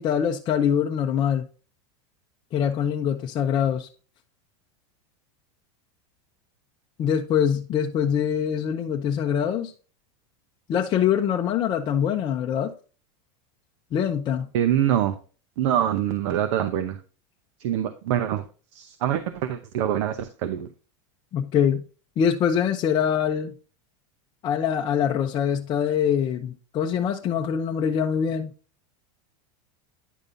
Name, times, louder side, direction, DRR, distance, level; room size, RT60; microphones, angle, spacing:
voice 1, 0.0-1.5 2.5-3.9 7.0-9.7 10.7-12.7 13.9-14.5 21.3-21.8 22.2-23.5 24.4-28.5, left 8 dB, 30° left, 0.6 m, -24 dB
voice 2, 14.5-15.2 15.6-17.0 17.6-18.4 18.7-20.7, right 10 dB, 70° right, 0.8 m, -24 dB
10.0 x 5.3 x 2.6 m
supercardioid pair, 145°, 16 cm